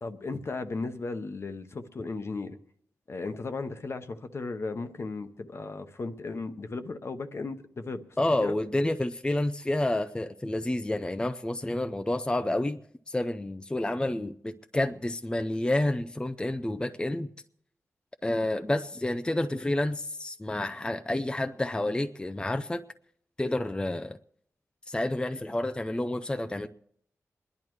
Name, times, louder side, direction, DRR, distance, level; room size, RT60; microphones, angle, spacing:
voice 1, 0.0-2.6 3.1-8.0 8.4-8.5, left 3 dB, 50° left, 0.9 m, -35 dB
voice 2, 8.2-12.8 13.1-17.3 18.2-22.8 23.4-24.2 24.9-26.7, left 1 dB, 15° left, 0.5 m, -29 dB
28.0 x 10.5 x 3.1 m
wide cardioid pair, 80°, 6 cm